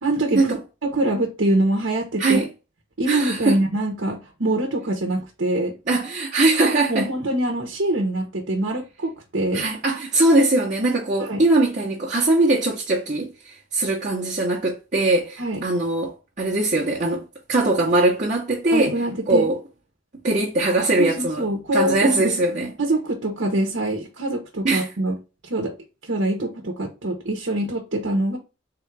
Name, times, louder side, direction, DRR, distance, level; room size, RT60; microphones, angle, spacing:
voice 1, 0.0-0.5 0.8-2.5 3.0-5.7 6.9-9.7 11.2-11.4 15.4-15.6 18.7-19.5 21.0-22.3 22.8-25.2 25.4-25.7 26.0-28.4, right 1 dB, 65° right, 1.0 m, -24 dB
voice 2, 3.1-3.5 5.9-7.1 9.5-17.2 17.5-18.9 19.3-19.6 20.2-21.4 21.7-22.7 24.6-24.9, right 2 dB, 40° right, 0.9 m, -21 dB
3.8 x 2.5 x 4.5 m
head